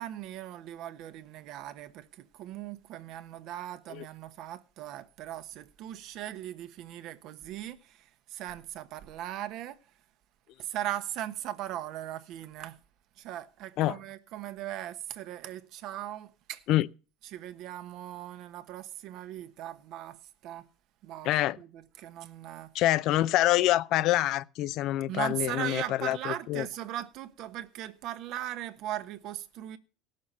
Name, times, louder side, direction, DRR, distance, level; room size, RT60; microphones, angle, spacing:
voice 1, 0.0-9.8 10.6-12.8 13.2-16.6 17.3-20.7 21.0-21.3 21.6-22.7 25.1-29.8, right 12 dB, 60° right, 1.1 m, -39 dB
voice 2, 21.2-21.6 22.7-26.7, left 14 dB, 60° left, 0.5 m, -26 dB
17.0 x 6.5 x 5.5 m
supercardioid pair, 115°, 0 cm